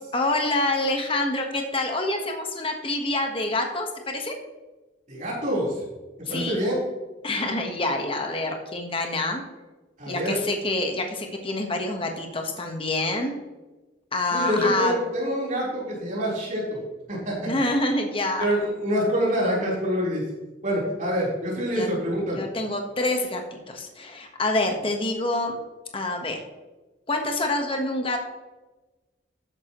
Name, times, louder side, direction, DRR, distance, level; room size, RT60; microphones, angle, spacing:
voice 1, 0.1-4.3 6.2-6.7 7.2-9.4 10.1-13.3 14.1-15.0 17.4-18.5 21.7-21.9 22.4-25.6 25.9-26.4 27.1-28.2, left 2 dB, 30° left, 3 dB, 1.3 m, -26 dB
voice 2, 5.1-5.8 6.3-6.8 10.0-10.4 14.3-16.8 17.1-17.5 18.4-20.2 20.6-22.4, equal, 45° right, -5 dB, 4.0 m, -26 dB
12.5 x 9.8 x 3.1 m, 1.1 s
head